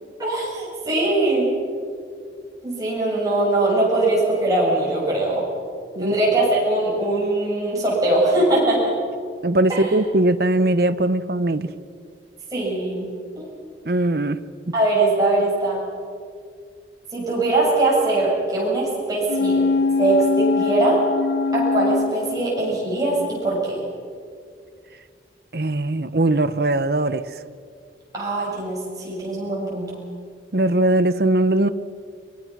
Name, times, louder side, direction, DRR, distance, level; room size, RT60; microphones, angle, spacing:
voice 1, 0.2-1.5 2.6-5.4 6.0-8.9 9.7-9.9 12.5-13.1 13.4-13.5 14.7-15.8 17.1-19.7 20.0-21.0 21.5-23.8 28.1-30.0, right 2 dB, 20° right, -5 dB, 7.3 m, -21 dB
voice 2, 9.4-11.7 13.8-14.4 25.5-27.2 30.5-31.7, right 1 dB, 55° right, 12 dB, 0.8 m, -20 dB
sound 1, 19.2-23.0 23.4-23.5, left 4 dB, 70° left, 0.6 m, -22 dB
23.5 x 22.5 x 6.1 m, 2.3 s
head